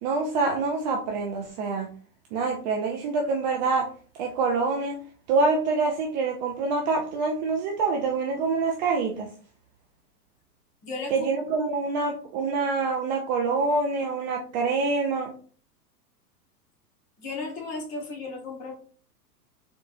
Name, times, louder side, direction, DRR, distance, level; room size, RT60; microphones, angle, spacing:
voice 1, 0.0-1.9 2.3-3.9 4.2-5.0 5.3-9.3 11.1-15.3, right 4 dB, 30° right, 2 dB, 0.4 m, -26 dB
voice 2, 10.8-11.3 17.2-18.7, left 3 dB, 35° left, 0 dB, 1.7 m, -35 dB
3.9 x 3.5 x 2.6 m, 0.42 s
hypercardioid pair, 105°, 49 cm